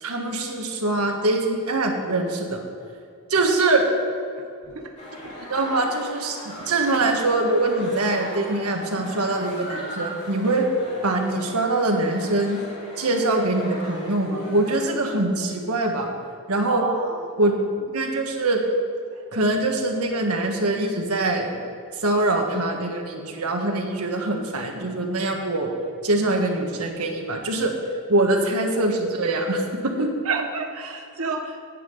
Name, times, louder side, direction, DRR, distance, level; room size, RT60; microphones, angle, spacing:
voice 1, 0.0-2.6 3.3-3.8 5.5-6.4 6.7-10.7 11.0-12.6 13.0-16.1 16.5-16.9 17.4-17.5 17.9-18.6 19.3-21.6 22.0-25.7 26.0-27.7 28.1-30.1, right 2 dB, 90° right, 2 dB, 1.6 m, -23 dB
sound 1, 5.0-14.8, left 1 dB, 30° left, 2.7 m, -38 dB
voice 2, 16.7-17.4 30.2-31.6, right 4 dB, 75° right, 5 dB, 0.8 m, -30 dB
10.0 x 5.6 x 8.4 m, 2.4 s
head